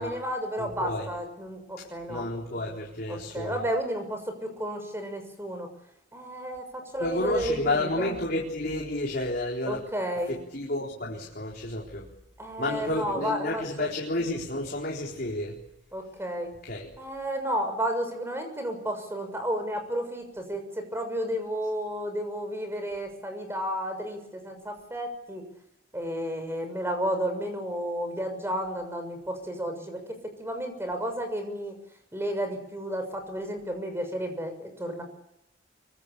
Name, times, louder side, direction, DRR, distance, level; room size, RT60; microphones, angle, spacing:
voice 1, 0.0-2.2 3.1-5.7 6.1-8.1 9.7-10.3 12.4-13.9 15.9-16.5 17.0-25.4 25.9-30.0 30.4-31.7 32.1-35.0, equal, 15° right, 6 dB, 6.7 m, -32 dB
voice 2, 0.6-1.1 1.8-3.6 7.0-9.8 10.3-12.1 12.6-15.6 16.6-16.9, left 1 dB, 55° left, -2 dB, 4.3 m, -31 dB
25.0 x 24.0 x 8.4 m, 0.81 s
head